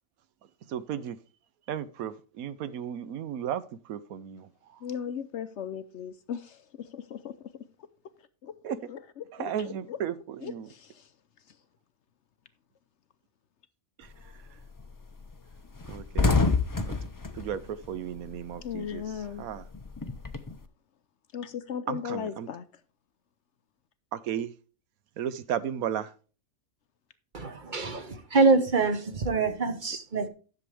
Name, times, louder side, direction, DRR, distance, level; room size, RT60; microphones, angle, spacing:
voice 1, 0.7-1.2 1.7-4.5 8.6-8.8 9.3-10.7 14.0-14.1 15.9-16.4 16.9-17.0 17.3-19.6 21.9-22.5 24.1-24.5 25.2-26.1, right 9 dB, 80° right, 1.1 m, -34 dB
voice 2, 4.8-6.6 6.9-7.3 8.4-8.5 8.9-9.5 9.9-10.0 10.4-10.9 18.6-19.5 21.3-22.6, left 8 dB, 65° left, 0.8 m, -36 dB
sound 1, 14.1-14.4 14.8-14.9 15.2-15.3 15.6-18.6 18.9-20.6, left 3 dB, 25° left, 0.4 m, -28 dB
voice 3, 27.3-30.3, right 3 dB, 40° right, 1.0 m, -25 dB
10.5 x 6.9 x 3.3 m
omnidirectional pair, 1.5 m